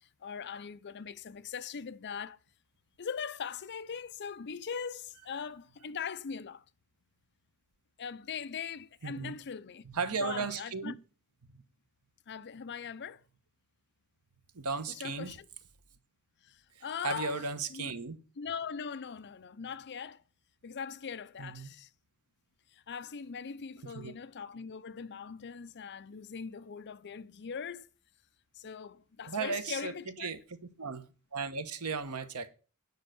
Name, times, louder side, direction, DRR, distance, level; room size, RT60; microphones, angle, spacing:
voice 1, 0.0-2.4 3.0-6.6 8.0-9.8 10.2-10.9 12.3-13.2 14.9-15.5 16.4-17.4 17.7-17.9 18.4-20.2 20.6-21.9 22.7-27.9 28.5-30.3, left 6 dB, 50° left, 0.5 m, -41 dB
voice 2, 9.0-9.4 9.9-11.0 11.5-11.6 14.5-15.3 16.8-18.2 21.4-21.7 23.9-24.1 29.3-29.9 30.2-30.4 30.8-31.1 31.3-32.5, right 4 dB, 90° right, 1.1 m, -35 dB
9.7 x 5.4 x 8.0 m
head